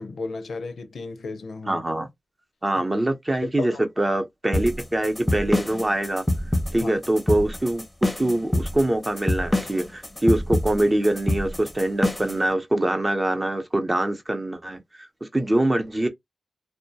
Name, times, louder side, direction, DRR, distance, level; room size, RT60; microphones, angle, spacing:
voice 1, 0.0-1.8 3.6-3.8 6.8-6.9, left 3 dB, 85° left, 0.4 m, -34 dB
voice 2, 1.7-2.1 2.6-6.2 6.7-16.1, right 1 dB, 30° right, 0.6 m, -24 dB
sound 1, 4.5-12.4, left 1 dB, 15° left, 0.6 m, -25 dB
2.2 x 2.1 x 2.7 m
cardioid pair, 60°, 0 cm